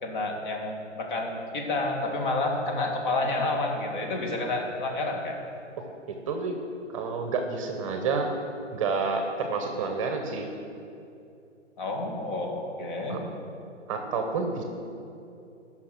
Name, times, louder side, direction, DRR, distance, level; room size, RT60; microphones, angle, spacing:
voice 1, 0.0-5.4 11.8-13.2, left 2 dB, 40° left, 1 dB, 2.1 m, -29 dB
voice 2, 6.3-6.6 6.9-8.3 8.7-10.5 13.1-13.2 13.9-14.6, right 4 dB, 25° right, 4 dB, 0.9 m, -29 dB
14.5 x 6.1 x 6.0 m, 2.7 s
hypercardioid pair, 150°, 36 cm